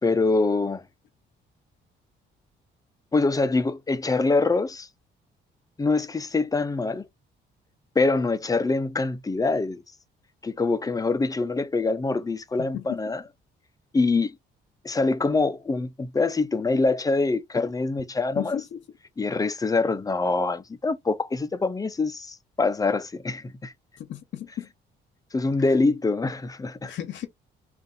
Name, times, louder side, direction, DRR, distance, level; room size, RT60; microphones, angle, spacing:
voice 1, 0.0-0.8 3.1-4.9 5.8-7.0 8.0-9.8 10.4-13.2 13.9-14.4 14.8-18.6 19.2-23.7 25.3-26.9, left 3 dB, 20° left, 0.5 m, -24 dB
voice 2, 24.0-24.7 26.8-27.3, left 11 dB, 65° left, 0.8 m, -33 dB
2.6 x 2.5 x 3.8 m
cardioid pair, 90°, 20 cm